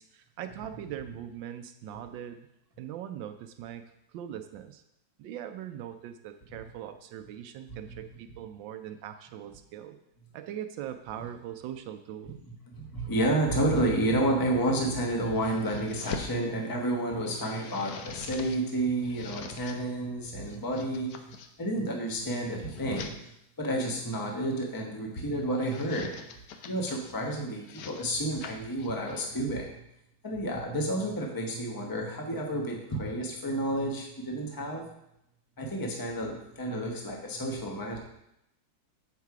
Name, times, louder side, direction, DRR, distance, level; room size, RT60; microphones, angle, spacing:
voice 1, 0.0-2.5 2.8-3.8 4.1-4.8 5.2-10.0 10.3-12.4, right 10 dB, 80° right, 8 dB, 1.3 m, -41 dB
voice 2, 12.7-23.1 23.6-26.2 26.7-29.8 30.2-34.9 35.6-38.0, right 1 dB, 15° left, 0 dB, 0.8 m, -30 dB
sound 1, 14.1-16.4 16.9-18.6 18.9-19.8 20.3-21.5 22.1-23.1 24.2-24.7 25.4-27.1 27.6-29.4, left 6 dB, 65° left, 1.0 m, -44 dB
8.2 x 4.8 x 4.7 m, 0.82 s
omnidirectional pair, 2.1 m